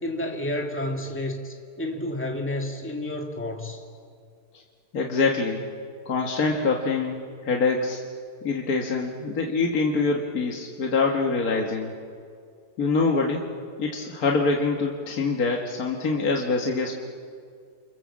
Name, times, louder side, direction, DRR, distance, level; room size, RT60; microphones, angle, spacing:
voice 1, 0.0-3.8, left 1 dB, 5° left, 2 dB, 2.1 m, -30 dB
voice 2, 4.9-5.7 6.1-8.0 8.4-11.9 12.8-13.5 13.8-16.9, left 4 dB, 60° left, 0 dB, 2.1 m, -25 dB
29.5 x 25.0 x 7.5 m, 2.2 s
omnidirectional pair, 1.7 m